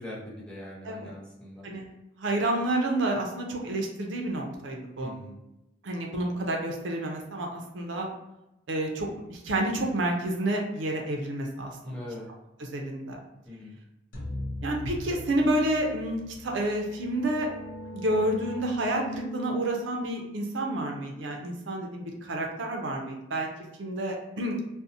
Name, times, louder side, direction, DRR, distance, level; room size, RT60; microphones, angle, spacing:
voice 1, 0.0-1.6 5.0-5.4 11.8-12.3 13.5-13.8, left 1 dB, 5° left, -5 dB, 0.6 m, -41 dB
voice 2, 2.2-5.1 5.8-8.1 8.7-12.0 12.6-13.2 14.6-17.5 17.9-23.5 23.8-24.6, right 1 dB, 75° right, 1 dB, 0.5 m, -29 dB
sound 1, 14.1-18.5, left 1 dB, 70° left, 0.6 m, -41 dB
sound 2, 16.7-22.2, left 1 dB, 45° left, 0.9 m, -42 dB
2.6 x 2.0 x 2.6 m, 0.91 s
head